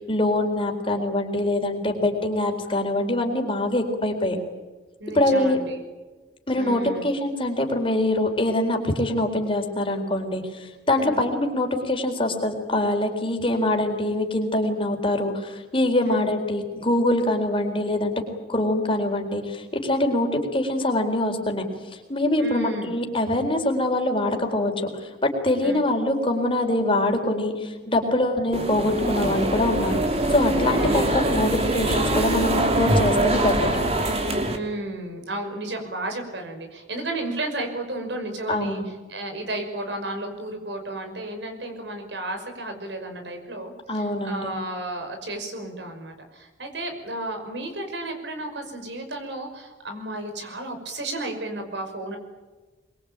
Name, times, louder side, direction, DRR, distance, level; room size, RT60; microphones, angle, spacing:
voice 1, 0.1-4.4 5.1-5.6 6.5-18.1 18.5-21.6 22.1-24.9 25.2-33.7 38.5-38.8 43.9-44.5, left 1 dB, 30° left, 3 dB, 4.1 m, -24 dB
voice 2, 5.0-5.8 6.6-7.0 10.9-11.2 16.0-16.3 22.4-22.9 25.6-25.8 30.6-31.1 34.5-52.2, right 1 dB, 75° right, 5 dB, 5.7 m, -33 dB
sound 1, 28.5-34.6, right 1 dB, 35° right, 2.8 m, -23 dB
23.0 x 23.0 x 8.9 m, 1.3 s
head